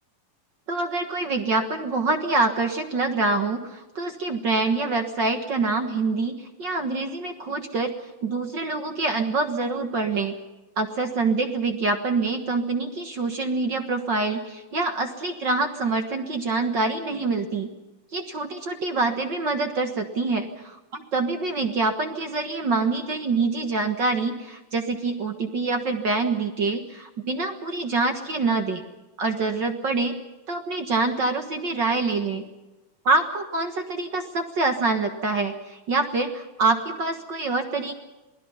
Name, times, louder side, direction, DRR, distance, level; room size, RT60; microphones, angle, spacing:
voice 1, 0.7-7.9 8.2-10.3 10.8-17.7 18.1-28.8 29.2-30.1 30.5-32.4 33.0-37.9, right 3 dB, 55° right, 5 dB, 1.2 m, -25 dB
28.0 x 20.5 x 5.7 m, 1.1 s
omnidirectional pair, 4.2 m